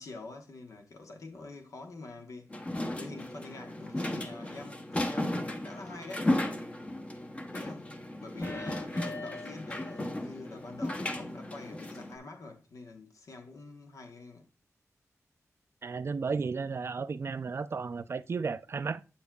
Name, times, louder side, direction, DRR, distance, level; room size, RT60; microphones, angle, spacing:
voice 1, 0.0-2.5 3.0-6.3 7.5-14.5, left 3 dB, 80° left, 1.2 m, -46 dB
sound 1, 2.5-12.2, left 1 dB, 20° left, 0.7 m, -35 dB
sound 2, 8.4-10.2 10.6-10.7, left 2 dB, 50° left, 1.2 m, -43 dB
voice 2, 15.8-19.0, right 5 dB, 50° right, 0.4 m, -33 dB
7.3 x 7.0 x 2.3 m
wide cardioid pair, 110°, 6 cm